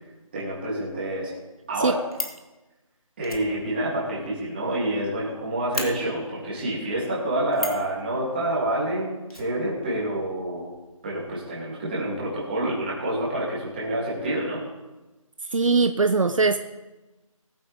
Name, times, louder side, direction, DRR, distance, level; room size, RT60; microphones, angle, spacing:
voice 1, 0.3-1.3 1.7-2.0 3.2-10.7 11.0-14.6, right 1 dB, 15° right, -6 dB, 3.0 m, -28 dB
Fire, 1.7-2.4 3.2-5.0 5.3-5.4 5.7-5.9 7.5-7.9 9.3-10.2 10.4-10.5 10.8-10.9, left 2 dB, 85° left, 2.7 m, -34 dB
voice 2, 15.5-16.6, right 4 dB, 65° right, 8 dB, 0.8 m, -20 dB
21.0 x 8.8 x 3.6 m, 1.1 s
figure-of-eight pair, 175°, 18 cm